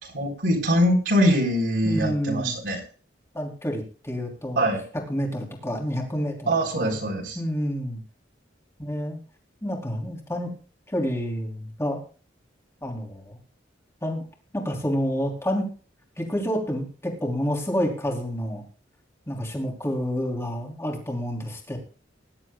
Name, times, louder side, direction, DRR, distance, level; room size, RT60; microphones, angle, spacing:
voice 1, 0.0-2.8 4.6-4.8 6.5-7.4, equal, 65° right, -1 dB, 3.9 m, -23 dB
voice 2, 1.8-2.6 3.3-4.7 4.9-6.5 6.7-7.0 7.3-8.0 8.8-9.2 9.6-10.5 10.9-12.0 12.8-13.4 14.0-14.2 14.5-15.7 16.2-18.7 19.3-21.8, equal, 15° left, 0 dB, 3.1 m, -28 dB
20.5 x 11.0 x 2.3 m, 0.37 s
head